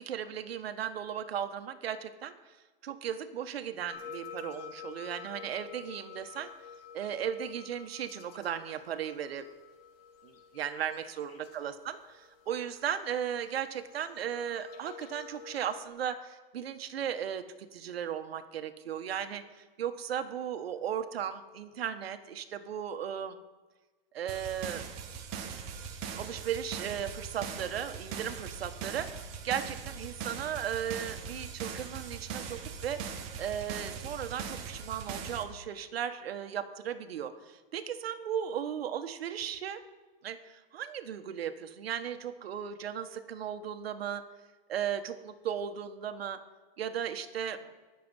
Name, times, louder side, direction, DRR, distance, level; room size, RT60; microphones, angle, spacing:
voice 1, 0.1-2.5 2.8-6.5 6.9-9.4 10.2-23.4 24.1-24.9 26.1-29.1 29.4-33.1 33.4-39.8 40.2-44.2 44.7-46.4 46.8-47.7, right 9 dB, 75° right, 8 dB, 1.3 m, -36 dB
sound 1, 3.9-15.9, left 7 dB, 70° left, 3.2 m, -49 dB
sound 2, 24.3-35.4, right 6 dB, 10° right, 0.3 m, -40 dB
20.0 x 6.8 x 5.3 m, 1.3 s
hypercardioid pair, 170°, 30 cm